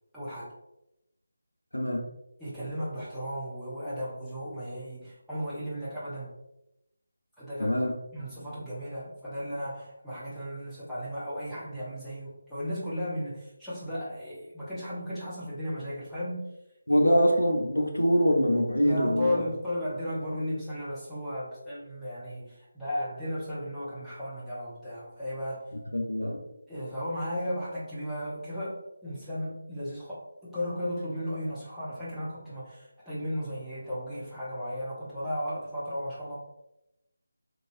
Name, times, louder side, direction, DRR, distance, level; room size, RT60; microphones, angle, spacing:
voice 1, 0.1-0.5 2.4-6.3 7.4-7.8 8.1-16.4 16.9-17.0 18.8-25.6 26.7-36.3, equal, ahead, -14 dB, 0.7 m, -35 dB
voice 2, 1.7-2.0 7.6-7.9 16.9-19.5 25.9-26.4, equal, 80° left, 2 dB, 0.6 m, -24 dB
3.1 x 2.6 x 2.6 m, 0.87 s
figure-of-eight pair, 160°, 0 cm